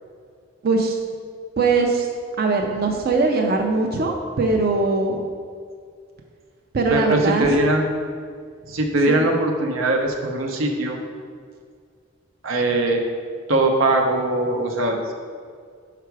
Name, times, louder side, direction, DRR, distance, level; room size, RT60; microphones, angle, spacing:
voice 1, 0.6-1.0 1.6-2.1 2.4-5.2 6.7-7.5 9.1-9.2, right 3 dB, 50° right, 2 dB, 0.5 m, -21 dB
voice 2, 6.9-7.9 8.7-11.0 12.4-13.0 13.5-15.1, right 2 dB, 90° right, 2 dB, 0.8 m, -21 dB
5.8 x 4.7 x 4.6 m, 2.1 s
head